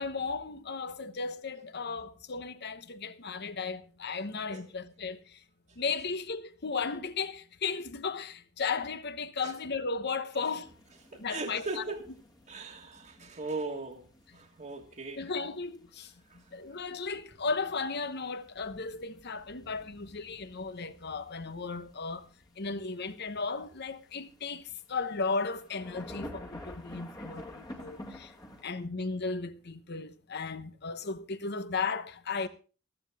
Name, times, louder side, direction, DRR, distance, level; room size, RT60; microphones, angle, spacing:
voice 1, 0.0-5.4 5.8-10.7 11.1-11.8 15.2-16.1 16.5-22.3 22.6-28.3 28.6-32.5, left 4 dB, 50° left, 1.0 m, -35 dB
sound 1, 10.6-28.6, left 1 dB, 20° left, 1.7 m, -51 dB
voice 2, 11.1-12.0 12.5-14.0 14.3-15.2, right 3 dB, 35° right, 1.6 m, -38 dB
15.0 x 13.5 x 3.5 m
head